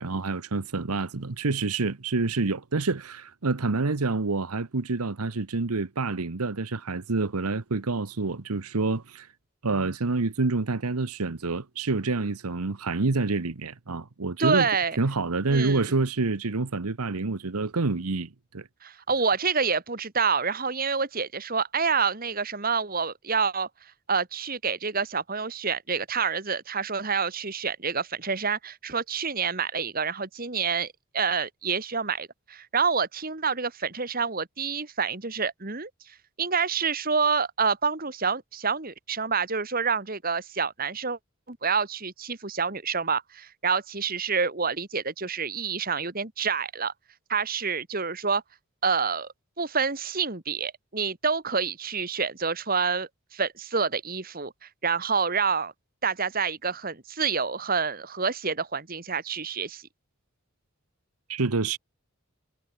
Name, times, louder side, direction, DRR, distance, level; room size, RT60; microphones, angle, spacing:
voice 1, 0.0-9.3 9.6-14.7 15.0-18.7 61.3-61.8, right 3 dB, 90° right, 1.1 m, -27 dB
voice 2, 14.4-15.0 15.5-15.9 18.8-23.7 24.1-41.2 41.5-46.9 47.3-48.4 48.8-55.7 56.0-59.8, right 5 dB, 40° right, 1.9 m, -28 dB
head